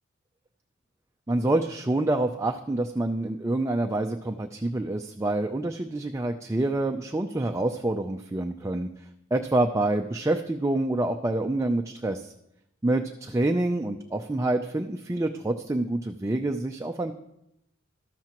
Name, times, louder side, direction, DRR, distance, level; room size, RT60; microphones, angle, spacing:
voice 1, 1.3-8.9 9.3-12.3 12.8-17.1, right 2 dB, 15° right, 5 dB, 0.4 m, -27 dB
13.0 x 12.5 x 3.0 m, 0.83 s
head